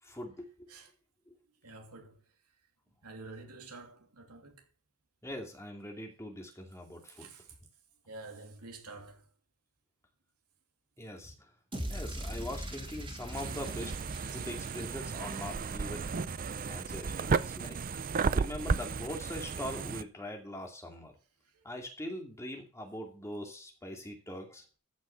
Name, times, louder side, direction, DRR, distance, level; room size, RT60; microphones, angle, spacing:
voice 1, 0.0-0.7 1.3-1.4 5.2-7.3 11.0-11.3 11.9-13.9 14.3-16.3 16.7-17.8 18.3-21.1 21.6-24.6, left 1 dB, 15° left, 2.5 m, -42 dB
voice 2, 1.6-2.2 3.0-4.7 7.1-7.6 8.0-9.3 12.0-12.1 14.2-14.5 21.4-21.7, right 3 dB, 90° right, 2.8 m, -49 dB
sound 1, 11.7-16.0, right 1 dB, 25° right, 3.0 m, -41 dB
sound 2, 13.3-20.0, right 5 dB, 40° right, 0.5 m, -34 dB
14.0 x 6.3 x 5.7 m
head